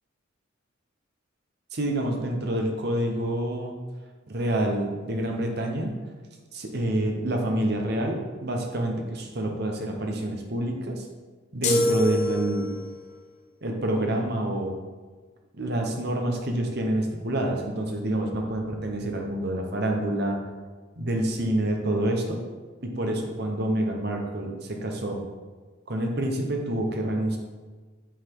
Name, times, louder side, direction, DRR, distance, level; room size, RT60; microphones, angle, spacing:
voice 1, 1.7-3.7 4.3-5.9 6.5-11.1 11.5-12.7 13.6-14.7 15.5-20.4 21.0-22.4 22.8-25.2 25.9-27.4, right 1 dB, 55° right, 2 dB, 1.0 m, -27 dB
sound 1, 11.6-13.0, left 1 dB, 35° left, 0.9 m, -25 dB
8.1 x 4.2 x 4.7 m, 1.4 s
head